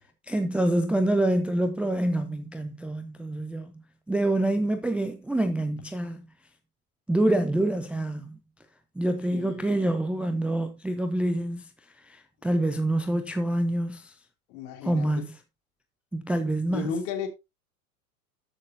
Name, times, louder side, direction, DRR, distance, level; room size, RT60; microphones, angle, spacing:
voice 1, 0.3-3.8 4.1-6.2 7.1-8.4 9.0-11.7 12.0-14.1 14.8-15.3 16.1-16.9, right 1 dB, 5° right, 0.6 m, -26 dB
voice 2, 9.3-9.6 14.5-15.2 16.6-17.3, left 6 dB, 50° left, 3.0 m, -34 dB
13.5 x 6.6 x 2.7 m
figure-of-eight pair, 90°, 46 cm